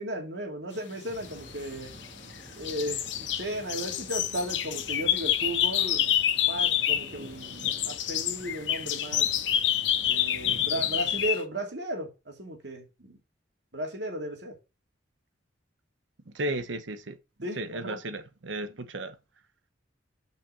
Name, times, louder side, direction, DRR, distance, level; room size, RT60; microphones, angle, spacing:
voice 1, 0.0-1.9 2.5-6.1 6.5-9.3 10.0-13.2 13.7-14.5 17.4-18.0, right 1 dB, 65° right, 2.6 m, -35 dB
sound 1, 1.1-11.3, right 1 dB, 45° right, 1.8 m, -48 dB
sound 2, 1.5-2.3 2.6-7.2 7.4-11.4, left 11 dB, 70° left, 0.9 m, -27 dB
voice 2, 16.3-17.2 17.6-19.2, right 1 dB, 80° right, 0.9 m, -34 dB
5.9 x 5.9 x 6.9 m
head